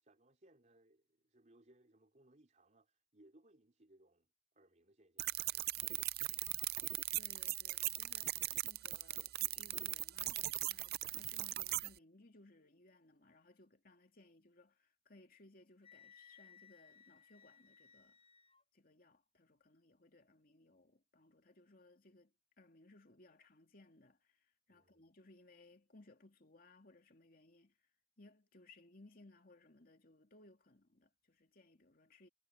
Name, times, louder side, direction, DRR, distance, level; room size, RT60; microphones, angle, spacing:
voice 1, 0.0-4.3 4.5-5.8 24.7-25.0, right 1 dB, 45° right, 3.9 m, -68 dB
sound 1, 5.2-11.9, right 16 dB, 60° right, 0.5 m, -39 dB
voice 2, 7.1-18.2 18.7-27.8 28.2-32.3, left 2 dB, 55° left, 2.6 m, -64 dB
Wind instrument woodwind instrument, 15.8-18.6, left 7 dB, 30° left, 0.7 m, -62 dB
head